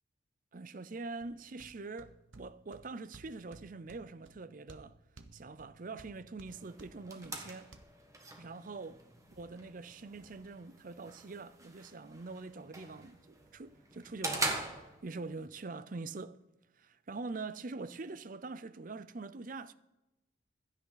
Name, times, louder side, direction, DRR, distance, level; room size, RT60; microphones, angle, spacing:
voice 1, 0.5-5.0 5.3-7.7 8.4-9.0 9.3-16.4 16.7-19.7, right 3 dB, 45° right, 0.5 m, -44 dB
sound 1, 1.2-7.8, right 2 dB, 85° right, 1.1 m, -58 dB
sound 2, 6.5-15.5, right 2 dB, 15° right, 1.4 m, -43 dB
16.0 x 12.0 x 4.0 m
head